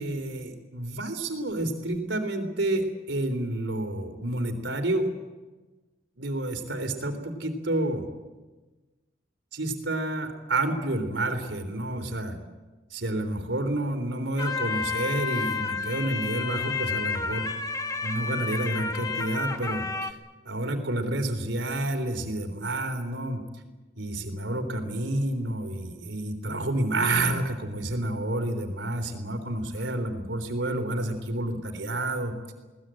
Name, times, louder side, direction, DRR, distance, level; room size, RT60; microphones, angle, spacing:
voice 1, 0.0-5.1 6.2-8.1 9.5-12.4 12.9-17.5 18.0-20.2 20.5-23.4 24.0-32.5, right 1 dB, 75° right, 7 dB, 3.7 m, -29 dB
sound 1, 14.4-20.1, left 4 dB, 20° left, 1.1 m, -31 dB
22.0 x 19.0 x 9.0 m, 1.2 s
head